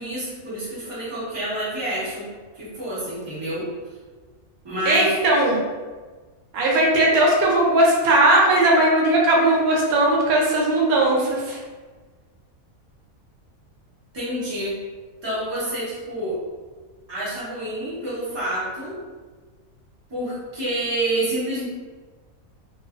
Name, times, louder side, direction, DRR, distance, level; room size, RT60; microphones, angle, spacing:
voice 1, 0.0-2.3 2.5-3.7 4.6-5.1 14.1-14.8 15.2-16.4 17.1-19.0 20.1-21.6, right 1 dB, 20° right, -10 dB, 0.9 m, -28 dB
voice 2, 4.9-5.6 6.5-11.6, right 1 dB, 85° right, -3 dB, 1.1 m, -18 dB
2.6 x 2.4 x 2.4 m, 1.4 s
omnidirectional pair, 1.5 m